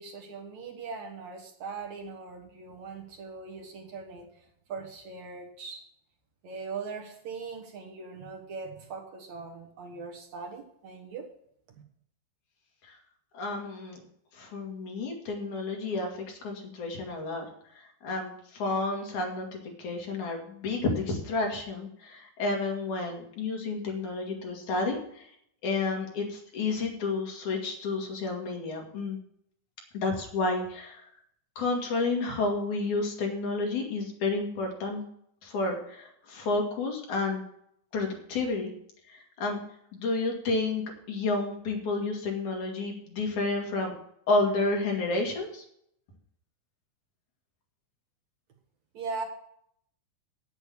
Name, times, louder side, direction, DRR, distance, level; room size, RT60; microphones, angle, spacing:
voice 1, 0.0-5.8 6.4-11.3 11.7-11.8 48.9-49.2, right 4 dB, 60° right, 1 dB, 2.5 m, -40 dB
voice 2, 13.3-14.0 14.3-17.5 17.7-25.3 25.6-29.2 29.9-31.0 31.6-35.0 35.4-37.4 37.9-38.7 39.1-39.6 39.9-43.9 44.3-45.6, left 3 dB, 60° left, 1 dB, 3.3 m, -30 dB
9.2 x 8.3 x 7.1 m, 0.70 s
omnidirectional pair, 4.0 m